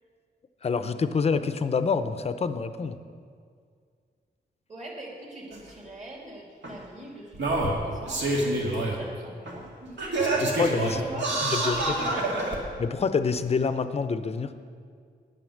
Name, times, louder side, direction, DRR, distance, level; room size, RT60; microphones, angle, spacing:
voice 1, 0.6-3.0 10.4-11.0 11.4-11.8 12.8-14.5, left 5 dB, 35° left, 11 dB, 0.5 m, -27 dB
voice 2, 4.7-10.0 10.8-12.4, right 1 dB, 40° right, -3 dB, 2.6 m, -42 dB
Singing, 5.5-5.6 6.6-6.7 7.3-9.0 9.5-9.6 10.0-12.6 13.3-13.4, right 2 dB, 80° right, 2.0 m, -27 dB
9.9 x 9.2 x 6.4 m, 2.1 s
wide cardioid pair, 170°, 18 cm